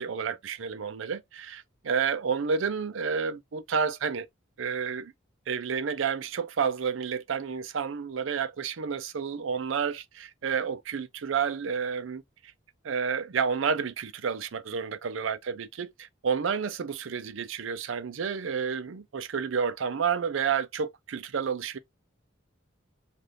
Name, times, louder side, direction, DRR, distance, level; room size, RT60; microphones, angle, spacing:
voice 1, 0.0-4.3 4.6-5.1 5.5-12.2 12.8-21.8, right 6 dB, 75° right, 0.5 m, -30 dB
2.6 x 2.4 x 3.3 m
head